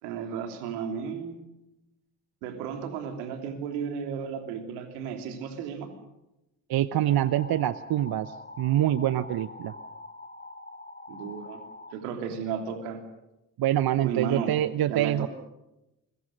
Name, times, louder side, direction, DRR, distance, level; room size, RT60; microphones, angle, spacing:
voice 1, 0.0-1.4 2.4-5.9 11.1-11.6 11.9-13.0 14.0-14.5 14.8-15.3, right 7 dB, 75° right, 5 dB, 3.2 m, -34 dB
voice 2, 6.7-9.7 13.6-15.3, right 12 dB, 50° right, 15 dB, 0.9 m, -25 dB
sound 1, 6.9-11.9, left 2 dB, 20° left, 3.8 m, -44 dB
29.0 x 23.0 x 6.5 m, 0.93 s
figure-of-eight pair, 40°, 46 cm